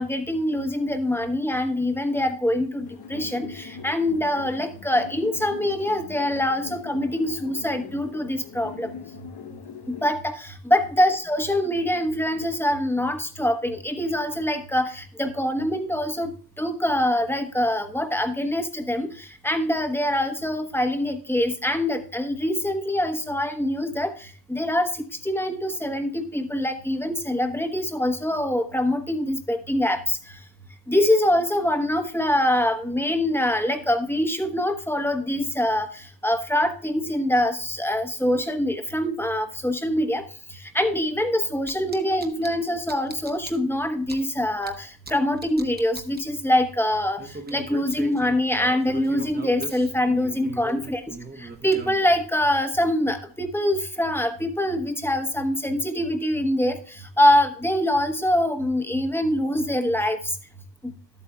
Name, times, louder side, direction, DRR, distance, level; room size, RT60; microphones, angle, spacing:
voice 1, 0.0-8.9 9.9-16.3 16.6-24.9 25.2-30.2 30.9-40.2 40.7-47.2 47.5-51.0 51.4-60.2 60.8-60.9, left 1 dB, 5° left, 6 dB, 1.0 m, -24 dB
sound 1, 2.9-10.1, left 6 dB, 60° left, 0.9 m, -41 dB
sound 2, 41.7-42.5 42.9-43.5 44.1-44.2 44.6-44.7 45.1-45.2 45.4-46.2 47.2-52.2, right 3 dB, 20° right, 0.9 m, -38 dB
12.5 x 8.2 x 2.2 m, 0.42 s
wide cardioid pair, 130°, 43 cm